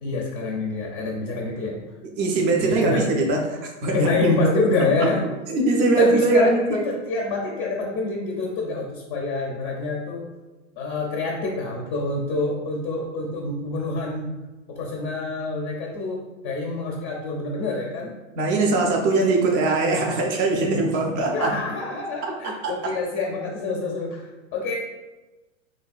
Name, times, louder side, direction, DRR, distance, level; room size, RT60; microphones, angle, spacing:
voice 1, 0.0-1.8 2.6-3.1 3.9-5.2 6.0-10.3 10.8-14.3 14.7-18.1 21.3-24.8, left 3 dB, 30° left, -1 dB, 0.5 m, -27 dB
voice 2, 2.2-4.5 5.0-5.1 5.5-6.8 18.4-21.5 22.6-22.7, right 3 dB, 30° right, 1 dB, 0.4 m, -21 dB
3.1 x 2.6 x 2.3 m, 1.1 s
hypercardioid pair, 125°, 40 cm